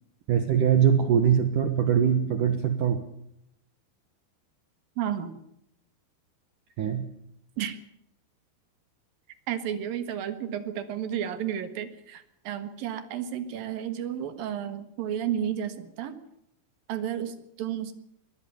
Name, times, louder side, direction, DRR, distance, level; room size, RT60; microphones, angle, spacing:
voice 1, 0.3-3.0 6.8-7.1, right 8 dB, 75° right, 9 dB, 1.9 m, -22 dB
voice 2, 5.0-5.4 7.6-7.8 9.5-16.2 16.9-17.9, right 9 dB, 60° right, 11 dB, 2.7 m, -32 dB
23.0 x 18.5 x 6.9 m, 0.76 s
omnidirectional pair, 5.9 m